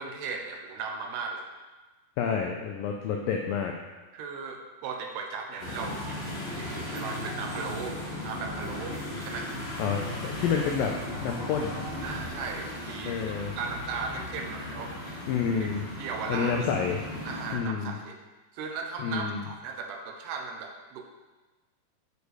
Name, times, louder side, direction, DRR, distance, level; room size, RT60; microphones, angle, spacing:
voice 1, 0.0-1.5 4.1-9.5 12.0-15.2 15.6-15.7 16.0-16.5 17.3-18.2 18.5-21.0, right 5 dB, 80° right, 3 dB, 2.8 m, -37 dB
voice 2, 2.2-3.7 9.8-11.8 13.1-13.5 15.3-15.9 16.3-17.0 17.5-18.0 19.0-19.4, left 6 dB, 90° left, 1 dB, 2.0 m, -29 dB
sound 1, 5.6-17.5, left 1 dB, 30° left, 1.1 m, -37 dB
8.3 x 5.2 x 4.7 m, 1.2 s
omnidirectional pair, 4.8 m